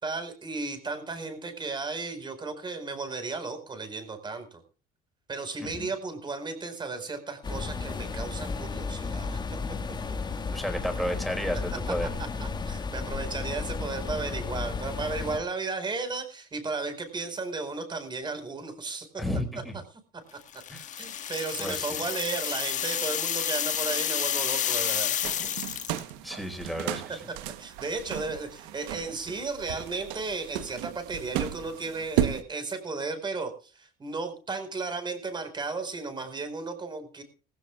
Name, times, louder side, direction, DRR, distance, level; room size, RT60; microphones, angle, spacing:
voice 1, 0.0-4.6 5.3-9.4 12.4-19.2 20.3-20.4 21.0-25.2 27.1-27.2 27.6-37.2, right 3 dB, 25° right, 8 dB, 4.9 m, -34 dB
sound 1, 7.4-15.4, left 4 dB, 25° left, 1.7 m, -33 dB
voice 2, 10.5-12.1 19.2-19.8 20.7-20.9 21.6-22.0 26.2-27.2, equal, ahead, 3 dB, 5.0 m, -32 dB
sound 2, 20.5-26.1, left 10 dB, 45° left, 1.3 m, -30 dB
sound 3, 25.2-32.4, right 11 dB, 90° right, 1.1 m, -34 dB
20.0 x 16.0 x 2.4 m, 0.36 s
cardioid pair, 105°, 17 cm